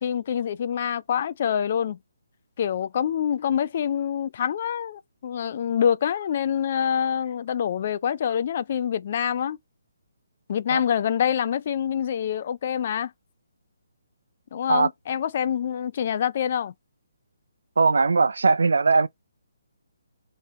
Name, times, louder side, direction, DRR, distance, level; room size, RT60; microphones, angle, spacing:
voice 1, 0.0-2.0 2.6-9.6 10.5-13.1 14.5-16.7, left 8 dB, 45° left, 0.4 m, -26 dB
voice 2, 17.8-19.1, right 4 dB, 75° right, 0.4 m, -19 dB
3.9 x 3.1 x 4.2 m
hypercardioid pair, 150°, 0 cm